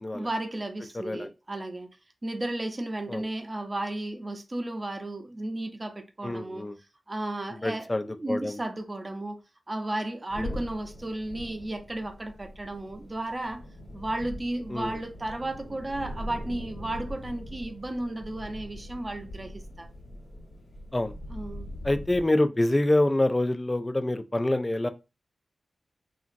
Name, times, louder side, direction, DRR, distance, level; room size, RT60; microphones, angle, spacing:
voice 1, 0.1-1.9 2.2-6.7 7.1-9.4 9.7-13.6 13.9-19.9 21.3-21.8, right 1 dB, 30° right, 0.6 m, -34 dB
voice 2, 6.2-6.8 7.6-8.6 10.4-10.5 14.7-14.9 20.9-21.1 21.8-24.9, left 1 dB, 25° left, 0.3 m, -26 dB
sound 1, 10.3-22.3, left 1 dB, 75° left, 1.2 m, -42 dB
2.8 x 2.5 x 2.5 m
cardioid pair, 50°, 0 cm